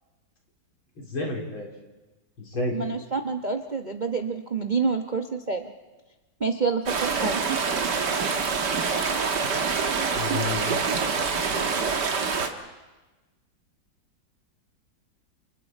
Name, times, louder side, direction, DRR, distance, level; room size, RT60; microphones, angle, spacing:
voice 1, 1.0-1.7 2.4-2.8 10.1-10.7 11.2-11.8, left 3 dB, 85° left, 0 dB, 4.6 m, -31 dB
voice 2, 2.7-5.7 6.4-7.4, right 4 dB, 35° right, 4 dB, 0.8 m, -27 dB
sound 1, 6.9-12.5, right 5 dB, 60° right, 2.1 m, -26 dB
29.0 x 28.5 x 4.5 m, 1.2 s
omnidirectional pair, 2.2 m